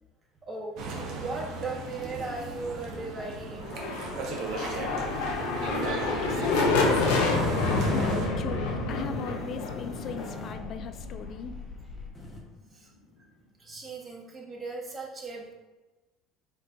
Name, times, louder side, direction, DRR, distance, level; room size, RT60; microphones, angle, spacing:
voice 1, 0.5-3.9 12.7-12.9 13.6-15.5, right 3 dB, 30° right, -2 dB, 1.4 m, -38 dB
sound 1, 0.8-8.3, right 3 dB, 65° right, 0.9 m, -36 dB
sound 2, 3.6-11.4, left 3 dB, 80° left, 0.7 m, -28 dB
sound 3, 4.8-12.4, left 1 dB, 20° left, 1.0 m, -42 dB
voice 2, 6.2-11.6, left 7 dB, 50° left, 9 dB, 0.3 m, -39 dB
4.3 x 4.2 x 2.6 m, 1.1 s
hypercardioid pair, 75°, 0 cm